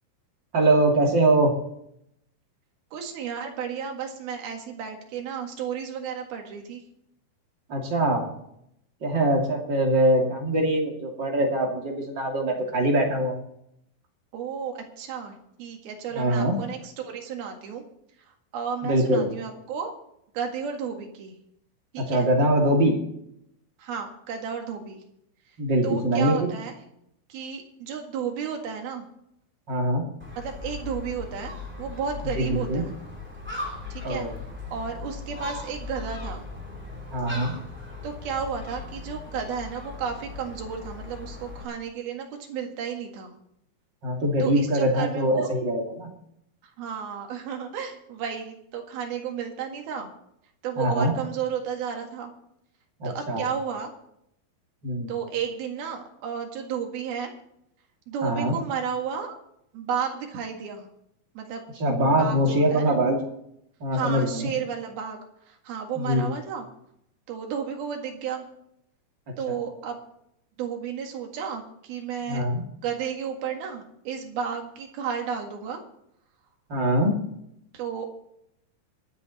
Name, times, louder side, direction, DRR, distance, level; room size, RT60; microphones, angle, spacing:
voice 1, 0.5-1.5 7.7-8.3 9.0-13.4 16.1-16.6 18.8-19.3 22.0-23.0 25.6-26.5 29.7-30.1 32.3-32.8 34.0-34.3 37.1-37.6 44.0-46.1 50.8-51.1 53.0-53.4 54.8-55.1 58.2-58.6 61.8-63.2 63.8-64.5 65.9-66.3 69.5-69.6 72.3-72.6 76.7-77.1, right 1 dB, 35° right, 0 dB, 2.8 m, -23 dB
voice 2, 2.9-6.8 14.3-17.8 18.5-19.9 20.3-21.4 21.9-22.3 23.8-25.0 25.8-26.7 27.3-29.0 30.4-32.9 33.9-34.3 34.7-36.5 38.0-43.4 44.4-45.5 46.6-50.1 50.6-52.3 53.0-53.9 55.1-57.3 58.1-59.4 59.7-60.9 61.4-61.6 62.1-63.0 63.9-65.2 65.5-66.7 67.3-68.5 69.4-70.0 70.6-72.4 72.8-75.8 77.7-78.1, right 7 dB, 75° right, 3 dB, 3.7 m, -33 dB
Gull seagull, 30.2-41.6, left 3 dB, 5° right, 2.6 m, -38 dB
25.0 x 8.4 x 4.2 m, 0.76 s
omnidirectional pair, 4.4 m